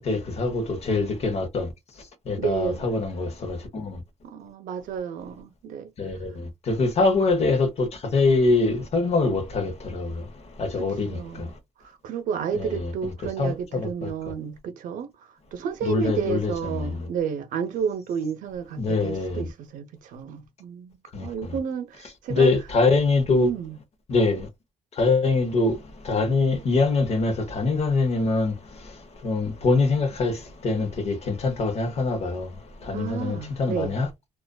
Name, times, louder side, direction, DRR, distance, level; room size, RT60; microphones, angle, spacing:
voice 1, 0.1-1.7 2.3-4.0 6.0-6.3 6.7-10.1 10.6-11.2 12.5-14.1 15.8-16.9 18.8-19.4 21.1-21.3 22.3-23.5 24.1-24.5 25.0-25.7 26.1-28.5 29.2-30.3 30.6-32.5 32.9-34.1, left 3 dB, 50° left, 0.9 m, -24 dB
voice 2, 2.4-2.9 4.2-5.9 11.1-11.5 12.0-15.1 15.5-21.0 21.2-22.5 23.3-23.8 32.9-33.9, right 7 dB, 80° right, 0.6 m, -31 dB
2.4 x 2.4 x 2.2 m
cardioid pair, 100°, 13 cm